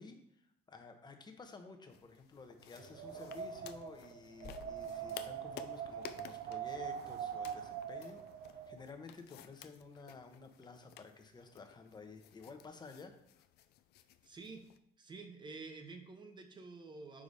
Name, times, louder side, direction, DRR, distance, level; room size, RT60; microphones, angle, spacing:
voice 1, 0.0-8.2 8.5-13.1, left 4 dB, 25° left, 6 dB, 0.8 m, -53 dB
sound 1, 1.9-14.8, left 12 dB, 75° left, 0.4 m, -56 dB
sound 2, 2.8-3.7 4.4-5.4 8.0-8.6 8.9-9.0 9.2-9.3, left 3 dB, 40° left, 1.7 m, -58 dB
Wind, 2.8-8.8, right 8 dB, 65° right, 0.6 m, -43 dB
voice 2, 14.2-14.6 15.0-17.2, right 3 dB, 25° right, 5 dB, 0.9 m, -49 dB
5.0 x 4.8 x 4.1 m, 0.73 s
cardioid pair, 110°, 17 cm